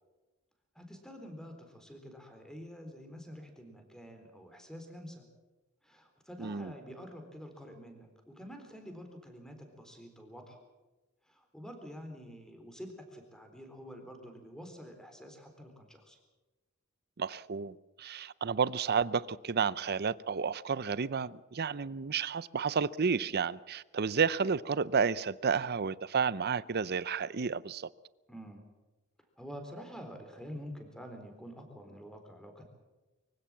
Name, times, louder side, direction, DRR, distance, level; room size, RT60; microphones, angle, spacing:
voice 1, 0.8-5.3 5.8-10.6 11.3-16.2 28.3-28.6 29.4-32.6, equal, 5° left, 3.9 m, -48 dB
voice 2, 6.4-6.7 17.2-27.9, right 6 dB, 50° right, 0.6 m, -31 dB
24.0 x 16.5 x 7.6 m
head